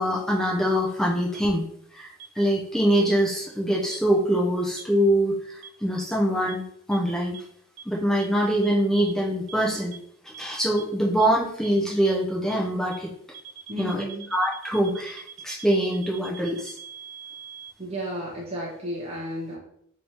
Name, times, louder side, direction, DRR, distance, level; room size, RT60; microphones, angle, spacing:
voice 1, 0.0-1.6 1.9-6.6 6.9-7.3 7.9-10.0 10.2-13.1 13.8-16.8, equal, ahead, -3 dB, 0.5 m, -24 dB
sound 1, 1.3-1.4 2.2-2.3 3.1-3.2 3.9-4.0 4.8-4.9 5.6-5.7 6.5-6.6 6.9-7.0 7.3-7.4 7.8-7.9 8.2-8.3 8.6-8.7 9.1-9.2 9.5-9.6 9.9-10.0 10.3-10.4 10.8-10.9 11.2-11.3 11.6-11.7 12.1-12.2 12.5-12.6 12.9-13.0 13.3-17.7, right 8 dB, 85° right, 0.8 m, -42 dB
voice 2, 13.7-14.3 17.8-19.6, equal, 25° right, -5 dB, 0.8 m, -33 dB
3.4 x 2.9 x 4.2 m, 0.69 s
head